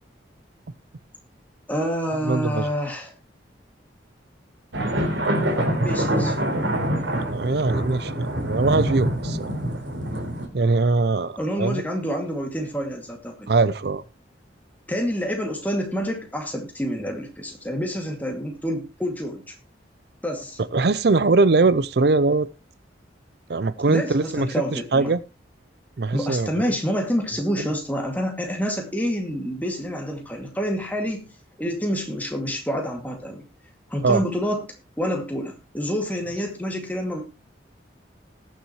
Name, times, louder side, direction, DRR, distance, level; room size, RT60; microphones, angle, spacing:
voice 1, 1.7-3.1 5.8-6.4 11.4-13.5 14.9-19.5 20.2-20.6 23.9-25.1 26.1-31.2 31.6-33.4 33.9-34.6 35.0-37.2, equal, 10° left, 2.2 m, -27 dB
voice 2, 2.3-2.7 7.2-9.5 10.5-11.8 13.5-14.0 20.7-22.5 23.5-25.2 26.0-26.5 34.0-34.2, right 3 dB, 60° right, 0.5 m, -21 dB
sound 1, 4.7-10.5, right 1 dB, 90° right, 3.5 m, -25 dB
20.0 x 7.3 x 3.1 m
head